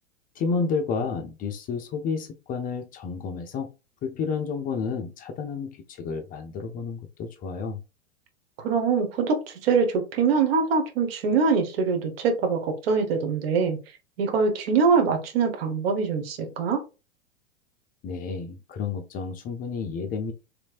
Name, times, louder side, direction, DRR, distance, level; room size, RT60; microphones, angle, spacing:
voice 1, 0.4-3.7 4.0-7.8 18.0-20.3, left 5 dB, 25° left, 0.5 m, -31 dB
voice 2, 8.6-13.8 14.2-16.8, right 5 dB, 60° right, 1.3 m, -23 dB
3.2 x 3.1 x 2.5 m
figure-of-eight pair, 95°, 34 cm